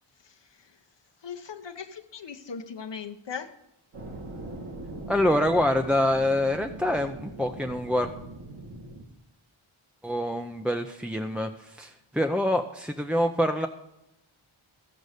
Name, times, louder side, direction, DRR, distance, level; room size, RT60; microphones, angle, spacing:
voice 1, 0.2-0.8 1.2-3.6, left 6 dB, 60° left, 6 dB, 0.8 m, -39 dB
sound 1, 3.9-9.0, right 2 dB, 85° right, 1.9 m, -41 dB
voice 2, 5.1-8.1 10.0-13.7, left 1 dB, ahead, 4 dB, 0.5 m, -26 dB
15.0 x 5.3 x 6.5 m, 0.91 s
wide cardioid pair, 95°, 50 cm